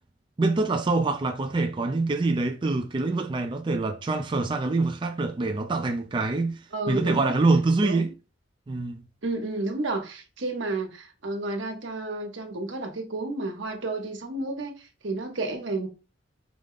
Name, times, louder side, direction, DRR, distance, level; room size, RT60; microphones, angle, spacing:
voice 1, 0.4-8.1 8.7-9.0, right 3 dB, 25° right, 0.4 m, -25 dB
voice 2, 6.7-7.3 7.8-8.0 9.2-15.9, right 2 dB, 90° right, 1.1 m, -31 dB
4.9 x 2.1 x 3.8 m
head